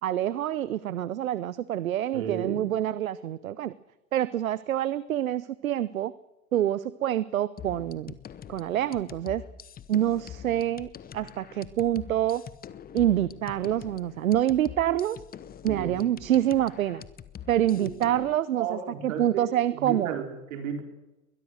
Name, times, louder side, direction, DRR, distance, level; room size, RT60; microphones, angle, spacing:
voice 1, 0.0-3.7 4.1-6.1 6.5-8.2 8.5-9.4 9.9-12.4 12.9-15.2 15.6-17.0 17.5-20.2, right 11 dB, 90° right, 17 dB, 0.7 m, -26 dB
voice 2, 2.1-2.6 15.6-16.0 17.7-17.9 18.6-20.8, right 7 dB, 70° right, 4 dB, 4.3 m, -33 dB
sound 1, 7.6-18.4, left 8 dB, 20° left, 1.0 m, -44 dB
22.0 x 21.0 x 6.5 m, 1.0 s
hypercardioid pair, 105°, 40 cm